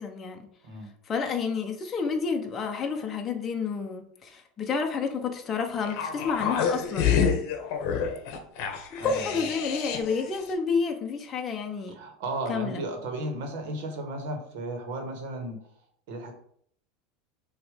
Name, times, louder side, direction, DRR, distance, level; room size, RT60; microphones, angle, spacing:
voice 1, 0.0-0.5 1.1-7.4 8.9-12.0 12.5-12.8, left 5 dB, 20° left, 3 dB, 0.9 m, -30 dB
sound 1, 5.8-10.2 10.5-10.6, left 7 dB, 50° left, 1.2 m, -28 dB
voice 2, 11.9-15.6 16.1-16.3, right 2 dB, 65° right, 4 dB, 1.8 m, -34 dB
6.6 x 3.2 x 5.1 m, 0.64 s
supercardioid pair, 160°, 0 cm